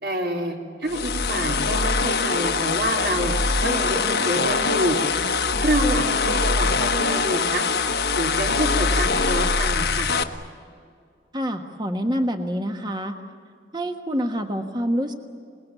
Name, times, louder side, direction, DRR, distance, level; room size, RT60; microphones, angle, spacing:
voice 1, 0.0-3.3 3.6-5.0 5.6-7.7 8.2-10.1, right 1 dB, 70° right, 1 dB, 3.8 m, -27 dB
sound 1, 0.9-10.2, left 4 dB, 70° left, 1.3 m, -23 dB
voice 2, 11.3-13.2 13.7-15.1, equal, 25° right, 5 dB, 1.4 m, -26 dB
27.5 x 20.5 x 9.1 m, 2.2 s
head